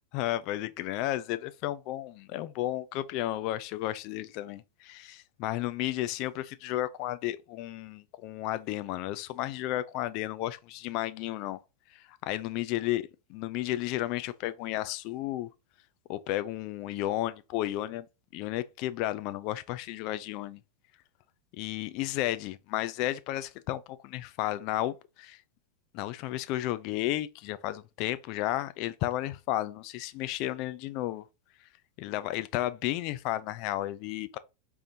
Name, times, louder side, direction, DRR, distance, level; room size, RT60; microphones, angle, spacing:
voice 1, 0.0-11.6 11.9-15.5 16.1-18.1 18.3-20.6 21.6-25.4 25.9-31.3 32.0-34.4, left 15 dB, 45° left, 0.4 m, -33 dB
5.0 x 3.5 x 2.7 m
figure-of-eight pair, 90°, 0 cm